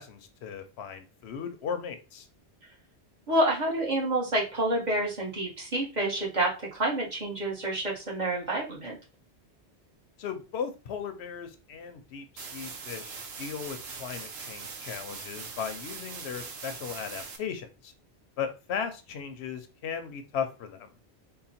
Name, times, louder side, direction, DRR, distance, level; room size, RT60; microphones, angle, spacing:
voice 1, 0.0-2.3 10.2-17.9 18.4-20.9, left 7 dB, 75° left, 9 dB, 0.9 m, -37 dB
voice 2, 3.3-9.0, right 1 dB, 40° right, -3 dB, 1.3 m, -28 dB
sound 1, 12.4-17.4, right 5 dB, 70° right, 1.0 m, -41 dB
3.8 x 2.2 x 4.2 m, 0.32 s
omnidirectional pair, 1.1 m